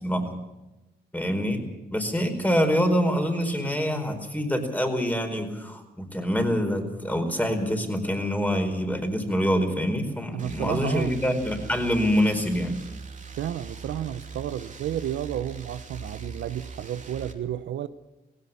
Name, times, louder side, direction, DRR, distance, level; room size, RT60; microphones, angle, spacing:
voice 1, 0.0-0.3 1.1-1.6 1.9-12.8, equal, 10° left, 4.6 m, -25 dB
voice 2, 10.3-11.2 13.4-17.9, right 11 dB, 80° right, 0.8 m, -31 dB
sound 1, 10.4-17.3, right 4 dB, 45° right, 2.9 m, -41 dB
18.0 x 17.0 x 8.5 m
cardioid pair, 75°, 19 cm